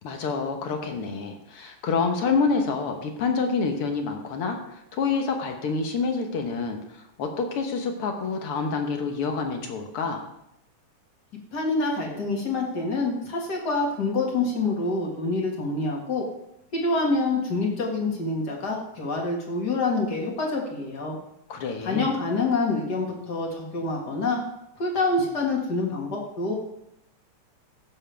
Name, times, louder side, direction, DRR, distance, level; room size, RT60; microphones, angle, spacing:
voice 1, 0.0-10.3 21.5-22.1, left 4 dB, 60° left, 4 dB, 1.7 m, -27 dB
voice 2, 11.5-16.2 16.7-21.2 21.8-24.4 24.8-26.6, left 3 dB, 40° left, 0 dB, 2.1 m, -26 dB
15.5 x 7.2 x 3.4 m, 0.81 s
omnidirectional pair, 3.4 m